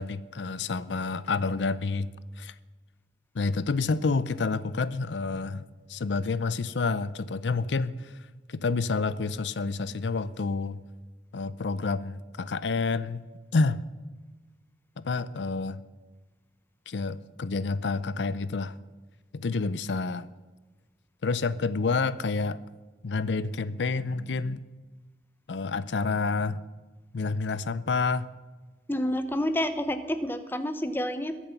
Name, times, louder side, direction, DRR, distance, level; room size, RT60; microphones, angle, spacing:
voice 1, 0.0-2.1 2.4-2.5 3.3-5.6 5.9-8.2 8.5-10.8 11.3-13.2 13.5-13.8 15.0-15.8 16.9-18.8 19.3-20.3 21.2-22.6 23.0-24.7 25.5-26.6 27.1-28.3, left 4 dB, 85° left, 16 dB, 0.6 m, -29 dB
voice 2, 28.9-31.4, left 1 dB, 10° left, 9 dB, 0.9 m, -29 dB
21.5 x 7.2 x 5.9 m, 1.3 s
head